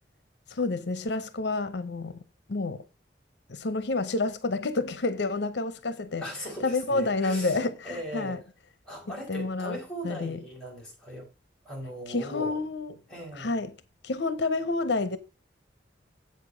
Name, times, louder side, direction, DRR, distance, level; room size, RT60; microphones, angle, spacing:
voice 1, 0.5-2.2 2.5-2.8 3.5-6.2 6.6-8.4 9.3-9.8 10.0-10.4 12.1-12.9 13.4-13.7 14.0-15.2, left 3 dB, 75° left, 0.7 m, -29 dB
voice 2, 6.2-8.4 8.8-11.3 11.6-12.6 13.1-13.5, equal, 5° left, 4.9 m, -39 dB
8.0 x 6.7 x 4.9 m
head